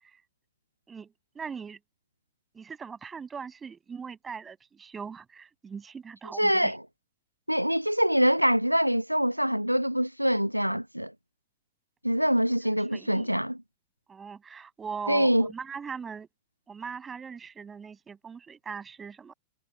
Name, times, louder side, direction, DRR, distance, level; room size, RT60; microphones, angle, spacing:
voice 1, 0.9-1.8 2.5-6.7 12.9-13.3 14.1-16.3 16.7-19.3, right 6 dB, 20° right, 6.7 m, -40 dB
voice 2, 6.4-6.8 7.5-11.1 12.0-13.6 15.1-15.5, equal, 90° right, 0.8 m, -24 dB
figure-of-eight pair, 90°, 0 cm